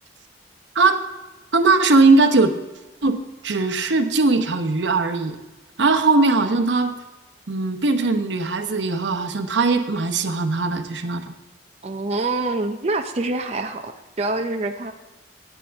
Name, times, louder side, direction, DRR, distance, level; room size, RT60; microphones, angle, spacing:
voice 1, 1.5-2.5 3.0-3.2 3.4-5.4 5.8-7.0 7.5-11.3, right 3 dB, 80° right, 7 dB, 0.9 m, -19 dB
voice 2, 11.8-14.9, right 2 dB, 35° right, 5 dB, 0.6 m, -26 dB
15.0 x 9.1 x 3.5 m, 1.1 s
head